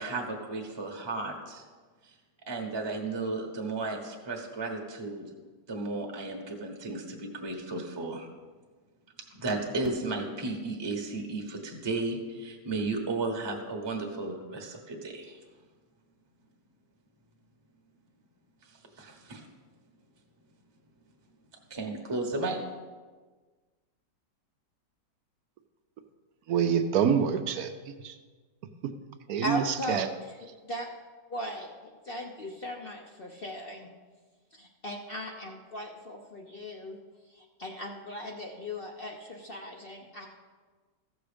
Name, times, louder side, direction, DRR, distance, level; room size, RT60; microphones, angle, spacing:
voice 1, 0.0-1.6 2.0-2.1 2.5-5.2 5.7-8.3 9.3-15.4 19.0-19.5 21.7-22.8, right 3 dB, 20° right, 1 dB, 1.0 m, -34 dB
voice 2, 26.5-27.7 28.0-28.1 29.3-30.1, right 7 dB, 65° right, 8 dB, 1.0 m, -26 dB
voice 3, 29.4-30.4 30.6-30.9 31.3-31.7 32.0-33.9 34.5-37.0 37.3-40.3, equal, 45° left, 1 dB, 0.8 m, -38 dB
15.0 x 6.3 x 5.1 m, 1.4 s
omnidirectional pair, 1.9 m